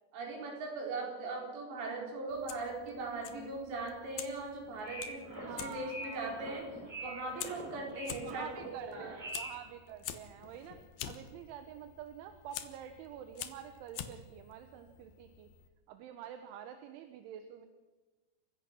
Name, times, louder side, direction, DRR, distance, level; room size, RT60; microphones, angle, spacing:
voice 1, 0.1-9.2, right 3 dB, 60° right, 0 dB, 6.6 m, -40 dB
Fire, 2.3-15.7, left 10 dB, 75° left, 2.3 m, -48 dB
sound 1, 4.6-9.7, right 1 dB, 5° right, 3.7 m, -45 dB
voice 2, 5.3-6.6 7.9-15.5 15.9-17.7, right 9 dB, 75° right, 7 dB, 3.4 m, -48 dB
29.0 x 16.0 x 6.1 m, 1.2 s
omnidirectional pair, 5.9 m